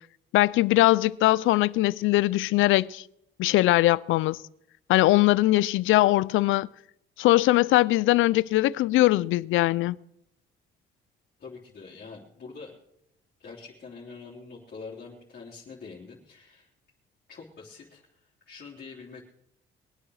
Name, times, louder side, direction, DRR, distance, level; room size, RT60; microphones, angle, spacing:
voice 1, 0.3-3.0 3.4-4.4 4.9-6.7 7.2-10.0, left 17 dB, 85° left, 0.5 m, -21 dB
voice 2, 11.4-12.7 13.4-16.7 17.3-19.2, left 4 dB, 50° left, 3.2 m, -45 dB
22.5 x 8.7 x 6.4 m
cardioid pair, 90°, 20 cm